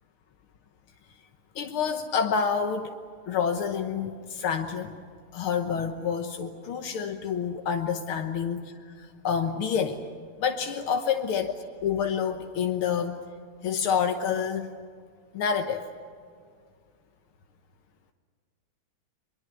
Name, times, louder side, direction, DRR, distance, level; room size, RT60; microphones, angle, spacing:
voice 1, 1.6-2.9 3.3-5.0 5.3-8.7 9.0-10.0 10.4-11.5 11.8-13.2 13.6-14.7 15.3-15.8, left 7 dB, 85° left, 5 dB, 2.0 m, -28 dB
24.5 x 22.0 x 8.2 m, 2.1 s
omnidirectional pair, 2.3 m